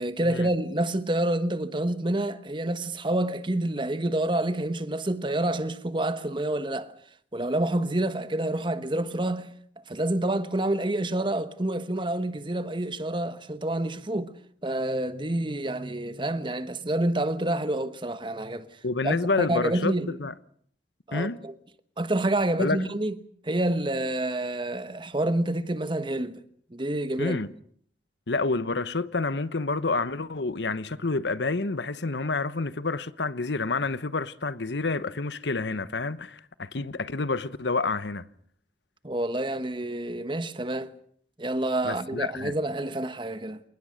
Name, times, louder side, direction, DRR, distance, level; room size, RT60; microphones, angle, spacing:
voice 1, 0.0-6.9 7.3-9.5 9.9-14.3 14.6-18.7 19.0-20.2 21.1-21.5 22.0-23.2 23.4-26.4 26.7-27.4 39.0-40.9 41.4-43.6, right 1 dB, 30° right, 1.2 m, -28 dB
voice 2, 18.8-20.3 21.1-21.4 22.6-22.8 27.2-27.5 28.3-38.3 41.8-42.5, left 3 dB, 85° left, 1.1 m, -28 dB
28.0 x 19.5 x 6.6 m
head